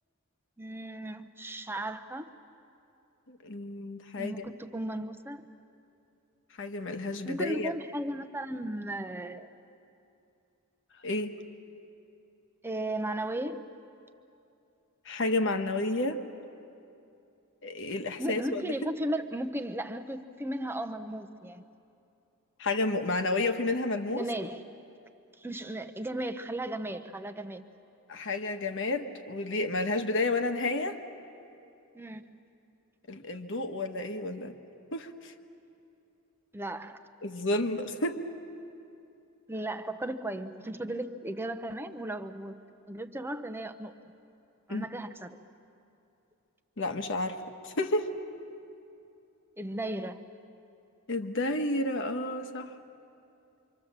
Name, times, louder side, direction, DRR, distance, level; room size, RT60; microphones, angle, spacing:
voice 1, 0.6-2.3 4.2-5.5 7.2-9.5 12.6-13.7 18.2-21.6 24.1-24.6 25.4-27.6 31.9-32.4 36.5-37.0 39.5-42.6 42.9-44.0 44.7-45.4 49.6-50.4, right 1 dB, 10° right, 7 dB, 0.8 m, -36 dB
voice 2, 3.3-4.4 6.6-7.7 11.0-11.4 15.1-16.2 17.6-18.6 22.6-24.3 28.1-31.0 33.1-34.5 34.9-35.3 37.2-38.2 44.7-44.8 46.8-48.2 51.1-52.7, left 2 dB, 55° left, 6 dB, 1.3 m, -31 dB
26.0 x 25.0 x 7.4 m, 2.7 s
head